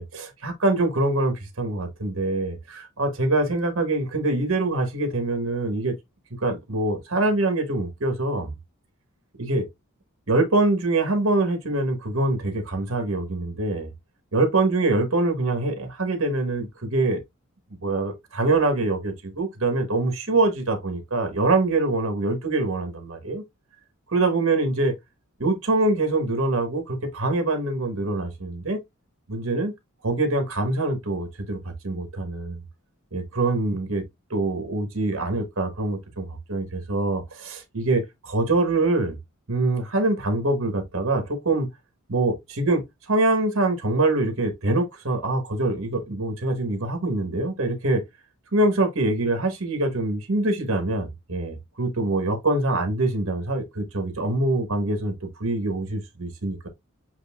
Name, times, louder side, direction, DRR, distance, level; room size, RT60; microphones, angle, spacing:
voice 1, 0.0-5.9 6.4-8.5 9.4-9.7 10.3-13.9 14.3-17.2 17.8-23.4 24.1-24.9 25.4-28.8 29.3-29.7 30.0-32.6 33.1-34.0 34.3-39.2 39.5-41.7 42.1-48.0 48.5-56.7, right 2 dB, 60° right, 1.4 m, -24 dB
7.8 x 2.6 x 2.3 m
head